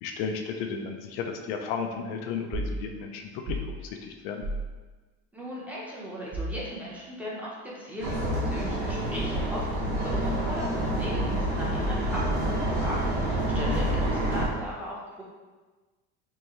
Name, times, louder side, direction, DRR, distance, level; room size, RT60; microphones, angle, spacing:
voice 1, 0.0-4.4 13.5-13.8, left 6 dB, 75° left, 4 dB, 0.5 m, -34 dB
sound 1, 2.5-2.8 3.5-3.7 4.4-4.7 6.3-6.6 8.2-8.8, right 1 dB, 25° right, 0.4 m, -33 dB
voice 2, 5.3-15.2, equal, 5° right, -6 dB, 0.8 m, -37 dB
sound 2, 8.0-14.5, right 1 dB, 75° right, 1.2 m, -28 dB
4.6 x 2.2 x 3.0 m, 1.3 s
cardioid pair, 135°, 30 cm